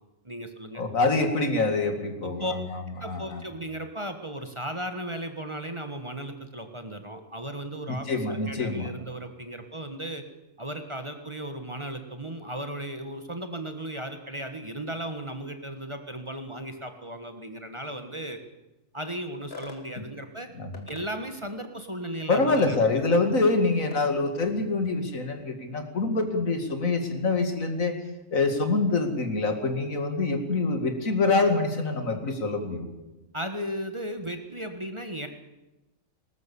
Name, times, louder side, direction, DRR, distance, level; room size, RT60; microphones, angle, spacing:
voice 1, 0.2-0.8 2.2-2.5 3.0-10.2 10.6-18.4 18.9-20.5 20.9-22.9 33.3-35.3, right 1 dB, 20° right, 7 dB, 1.4 m, -36 dB
voice 2, 0.8-2.7 3.0-3.4 7.9-8.9 20.0-20.1 20.6-20.7 22.3-28.0 28.3-32.9, left 3 dB, 75° left, 6 dB, 2.6 m, -25 dB
sound 1, 19.5-19.8 20.7-21.1 22.5-22.7 23.9-24.1, left 4 dB, 50° left, 2.1 m, -42 dB
19.5 x 19.0 x 7.0 m, 1.0 s
omnidirectional pair, 1.4 m